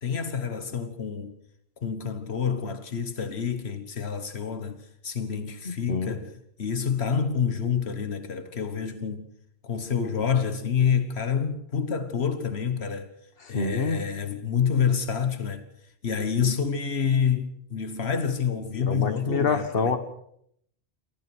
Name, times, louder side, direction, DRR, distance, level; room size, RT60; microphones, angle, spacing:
voice 1, 0.0-1.3 1.8-4.8 5.0-9.3 9.6-13.1 13.5-15.6 16.0-19.9, left 7 dB, 85° left, 1.5 m, -28 dB
voice 2, 5.6-6.2 13.5-14.0 18.8-20.0, left 4 dB, 65° left, 1.7 m, -26 dB
28.5 x 15.0 x 6.2 m
omnidirectional pair, 1.1 m